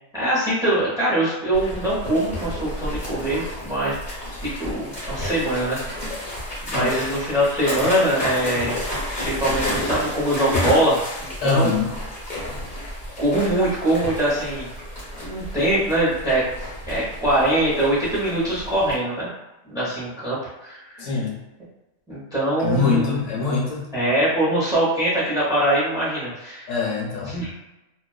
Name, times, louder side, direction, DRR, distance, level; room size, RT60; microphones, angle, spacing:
voice 1, 0.1-3.9 4.4-6.1 6.6-8.8 9.1-11.7 13.2-14.7 15.2-16.4 16.9-19.3 19.6-20.8 22.1-23.2 23.9-26.7 27.3-27.5, right 1 dB, 5° right, -9 dB, 0.7 m, -23 dB
sound 1, 1.5-18.9, left 1 dB, 40° left, 1.0 m, -31 dB
voice 2, 11.4-11.9 21.0-21.3 22.6-23.9 26.7-27.4, left 4 dB, 75° left, -3 dB, 1.1 m, -23 dB
2.4 x 2.3 x 2.3 m, 1.0 s
omnidirectional pair, 1.3 m